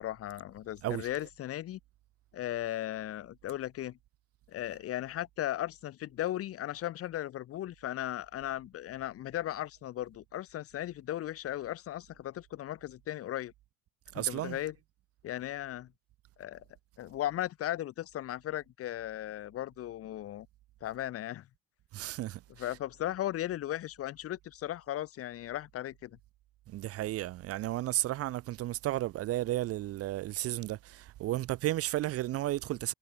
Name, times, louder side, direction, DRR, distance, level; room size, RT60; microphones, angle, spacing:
voice 1, 0.0-1.8 2.3-4.0 4.5-13.5 14.1-14.7 15.2-15.9 16.4-16.6 17.0-20.5 20.8-21.5 22.6-26.2, left 13 dB, 50° left, 1.6 m, -37 dB
voice 2, 14.1-14.6 21.9-22.4 26.7-32.9, right 15 dB, 50° right, 0.9 m, -33 dB
supercardioid pair, 110°, 30 cm